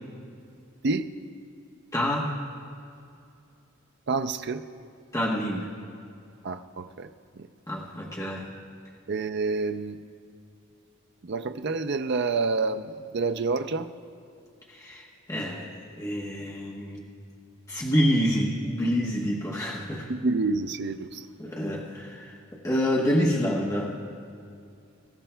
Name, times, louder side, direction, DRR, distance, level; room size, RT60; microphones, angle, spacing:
voice 1, 1.9-2.3 5.1-5.7 7.7-8.5 14.7-17.0 17.7-20.1 21.4-22.4 22.6-23.9, equal, 15° left, -4 dB, 1.0 m, -27 dB
voice 2, 4.1-4.6 6.4-7.1 7.4-7.5 9.1-10.0 11.3-13.9 20.1-21.2, right 3 dB, 50° right, 9 dB, 0.4 m, -28 dB
22.0 x 13.0 x 2.2 m, 2.5 s
head